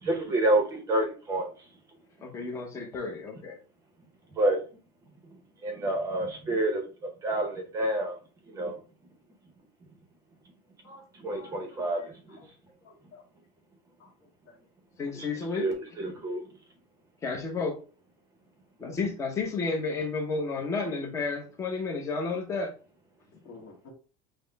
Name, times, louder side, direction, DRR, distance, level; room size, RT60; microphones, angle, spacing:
voice 1, 0.0-1.5 4.3-4.6 5.6-6.8 7.2-8.2 8.5-8.7 11.2-12.4 15.2-15.3 15.6-16.4, right 1 dB, 20° right, 4 dB, 0.7 m, -28 dB
voice 2, 2.2-3.6 15.0-15.7 17.2-17.8 18.8-22.7, left 4 dB, 15° left, 1 dB, 0.7 m, -31 dB
voice 3, 11.3-12.5 12.8-13.2 14.0-14.1 14.5-14.6 23.4-23.9, left 3 dB, 50° left, -2 dB, 1.1 m, -52 dB
5.8 x 2.1 x 3.2 m, 0.37 s
cardioid pair, 180°, 17 cm